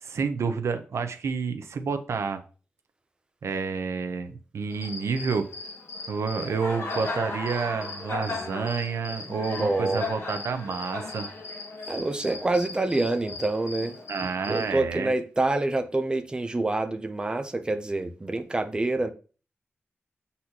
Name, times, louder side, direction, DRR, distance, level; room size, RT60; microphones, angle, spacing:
voice 1, 0.0-2.4 3.4-5.5 6.1-11.3 14.1-15.1, right 5 dB, 85° right, 0.7 m, -29 dB
Cricket, 4.7-14.7, left 3 dB, 75° left, 1.6 m, -36 dB
voice 2, 9.6-10.1 11.9-14.0 14.5-19.1, right 2 dB, 20° right, 0.5 m, -27 dB
7.8 x 4.2 x 2.9 m
wide cardioid pair, 125°, 5 cm